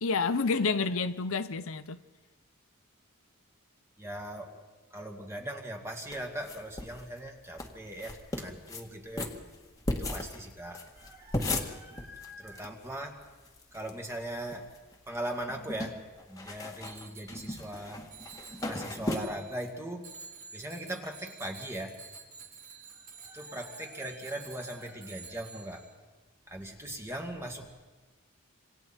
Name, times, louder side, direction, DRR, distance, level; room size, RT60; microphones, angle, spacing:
voice 1, 0.0-2.0, left 4 dB, 65° left, 0.8 m, -29 dB
voice 2, 4.0-4.6 4.9-9.3 10.0-13.2 13.7-14.6 15.1-16.0 16.3-18.0 18.6-20.1 20.5-21.9 23.2-25.8 26.5-27.7, right 1 dB, 10° right, 2.3 m, -39 dB
sound 1, 6.1-7.0 7.3-7.4 7.6-7.7 8.0-8.8 9.2-12.7 12.9-13.0 13.2-13.9 14.3-15.0 15.3-19.2, left 1 dB, 15° left, 1.9 m, -36 dB
Bicycle bell, 16.8-17.8 18.1-19.7 20.0-25.9, right 5 dB, 85° right, 3.8 m, -50 dB
27.5 x 26.0 x 4.4 m
head